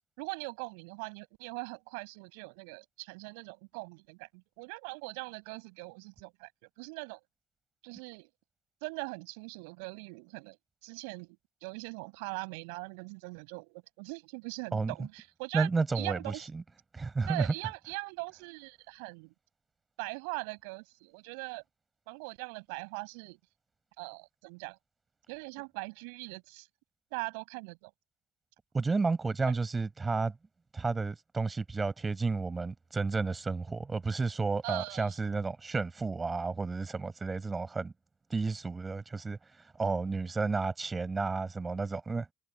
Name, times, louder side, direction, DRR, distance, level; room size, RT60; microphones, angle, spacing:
voice 1, 0.2-7.2 7.8-8.3 8.8-15.7 15.9-16.5 17.3-19.3 20.0-21.6 22.1-23.4 24.0-24.8 25.3-26.7 27.1-27.9 34.6-35.1, right 34 dB, 65° right, 6.3 m, -41 dB
voice 2, 15.5-16.6 16.9-17.5 28.7-30.3 30.7-37.9 38.3-39.4 39.8-42.3, right 4 dB, 25° right, 7.5 m, -31 dB
figure-of-eight pair, 55°, 0 cm